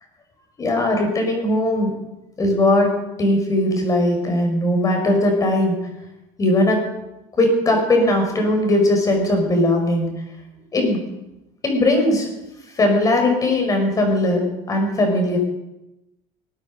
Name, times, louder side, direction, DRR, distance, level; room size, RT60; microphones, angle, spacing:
voice 1, 0.6-1.9 2.4-2.9 3.2-5.7 6.4-6.8 7.4-10.1 10.7-11.0 11.6-12.3 12.7-14.4 14.7-15.4, left 1 dB, 25° left, 3 dB, 5.4 m, -19 dB
21.0 x 9.1 x 5.4 m, 0.93 s
cardioid pair, 130°, 13 cm